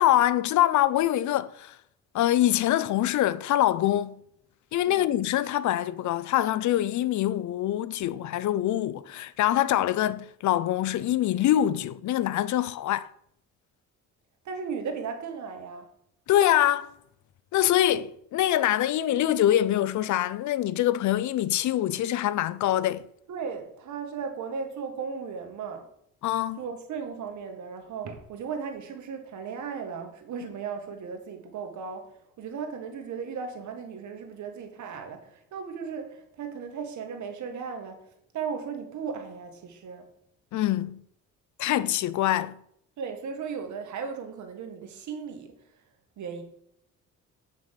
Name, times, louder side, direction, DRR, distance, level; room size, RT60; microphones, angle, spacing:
voice 1, 0.0-1.8 2.1-4.2 4.7-13.1 16.3-16.9 17.5-23.1 26.2-26.6 40.5-41.0 41.6-42.6, left 12 dB, 70° left, 0.6 m, -24 dB
voice 2, 4.8-5.2 14.4-15.9 23.3-25.9 26.6-40.1 43.0-45.8 46.2-46.4, right 6 dB, 70° right, 1.9 m, -36 dB
8.1 x 6.2 x 5.8 m
cardioid pair, 90°, 30 cm